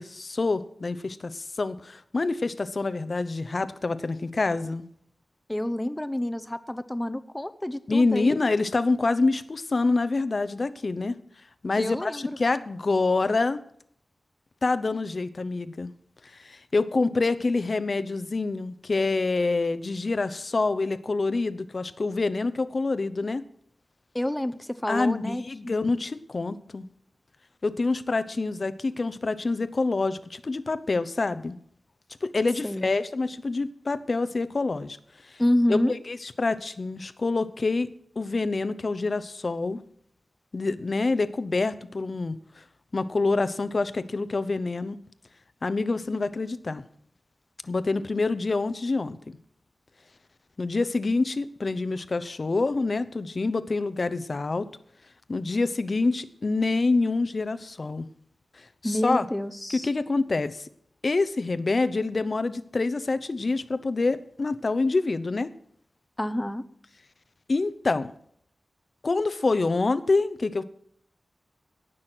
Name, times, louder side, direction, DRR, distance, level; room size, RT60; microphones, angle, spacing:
voice 1, 0.0-4.8 7.9-11.2 11.6-13.6 14.6-15.9 16.3-23.4 24.9-26.9 27.6-31.6 32.2-35.0 35.2-35.4 35.7-37.9 38.2-39.8 40.5-42.6 42.9-45.0 45.6-46.8 47.6-49.4 50.6-54.7 55.3-58.1 58.5-59.2 59.7-60.7 61.0-65.5 67.5-68.1 69.0-70.6, left 3 dB, 50° left, 14 dB, 0.7 m, -26 dB
voice 2, 5.5-8.4 11.8-12.4 24.1-25.7 32.6-32.9 35.4-35.9 58.8-59.9 66.2-66.7, left 1 dB, 15° left, 11 dB, 0.8 m, -28 dB
18.0 x 6.3 x 6.0 m, 0.64 s
wide cardioid pair, 80°, 0 cm